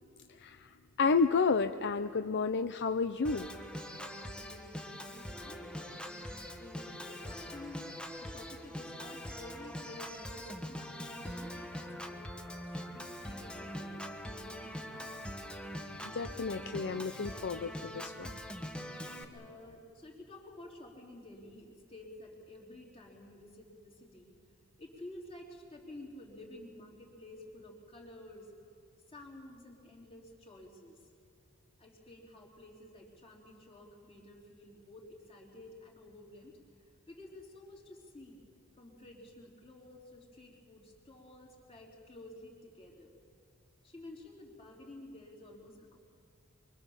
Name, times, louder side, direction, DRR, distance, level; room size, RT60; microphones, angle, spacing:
voice 1, 0.4-0.7 1.0-3.5 16.1-18.3, left 4 dB, 55° left, 9 dB, 0.6 m, -31 dB
Organ, 3.2-19.2, equal, 5° left, 1.5 m, -43 dB
voice 2, 4.2-14.0 14.3-15.1 18.8-24.4 24.8-28.5 29.1-31.1 31.8-38.4 38.8-43.1 43.8-46.0, left 1 dB, 25° left, -1 dB, 3.7 m, -52 dB
24.5 x 24.5 x 7.3 m, 2.4 s
head